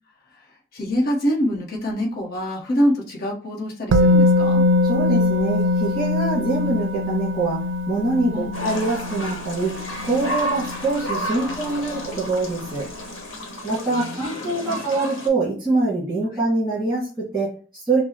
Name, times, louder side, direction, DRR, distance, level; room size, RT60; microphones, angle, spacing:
voice 1, 0.7-4.6 8.3-8.5 11.3-12.2 13.9-14.3 14.6-14.8, equal, 50° left, -2 dB, 1.0 m, -26 dB
Musical instrument, 3.9-11.8 12.1-12.3, left 2 dB, 65° right, 0.4 m, -22 dB
voice 2, 4.8-9.7 10.0-12.9 13.6-18.0, right 2 dB, ahead, -8 dB, 1.8 m, -24 dB
sound 1, 8.5-15.3, equal, 80° left, 1.1 m, -32 dB
6.0 x 2.0 x 2.9 m, 0.38 s
head